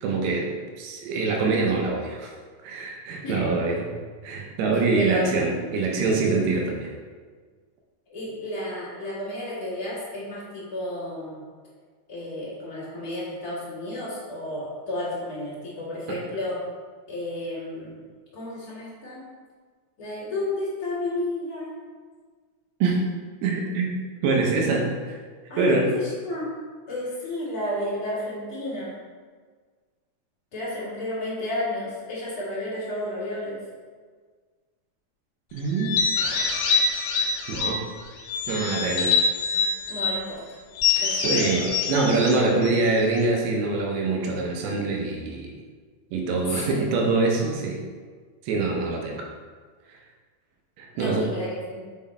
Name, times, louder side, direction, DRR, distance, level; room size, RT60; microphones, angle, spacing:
voice 1, 0.0-0.5 0.8-2.3 2.6-3.9 4.2-6.9 16.1-16.2 22.8-23.0 23.4-23.9 24.2-25.2 25.6-26.0 35.5-36.0 37.5-37.8 38.5-39.2 40.9-45.5 46.1-47.8 48.4-49.3 50.8-51.2, right 3 dB, 90° right, 0 dB, 2.7 m, -24 dB
voice 2, 4.7-5.3 8.1-11.4 12.1-16.6 17.1-17.9 18.3-19.2 20.0-21.7 25.5-26.5 26.9-28.9 30.5-33.6 39.9-40.4 41.0-41.7 46.4-46.8 50.9-51.8, left 1 dB, 35° left, -9 dB, 1.6 m, -32 dB
sound 1, 35.8-37.9 38.3-40.2 40.8-43.3, left 4 dB, 75° left, 2.5 m, -25 dB
6.2 x 4.0 x 4.2 m, 1.5 s
omnidirectional pair, 4.4 m